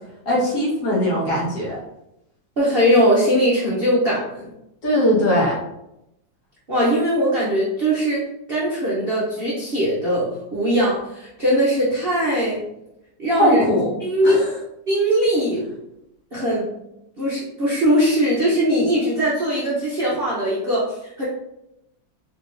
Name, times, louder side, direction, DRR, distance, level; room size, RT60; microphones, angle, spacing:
voice 1, 0.3-1.8 4.8-5.6 13.4-13.9 14.2-14.6, equal, 55° left, -6 dB, 1.7 m, -20 dB
voice 2, 2.6-4.5 6.7-8.2 8.5-12.6 13.2-13.6 14.0-14.4 14.9-15.6 16.3-16.7 17.2-21.2, equal, 45° right, -8 dB, 0.8 m, -20 dB
3.9 x 3.6 x 2.6 m, 0.84 s
omnidirectional pair, 2.0 m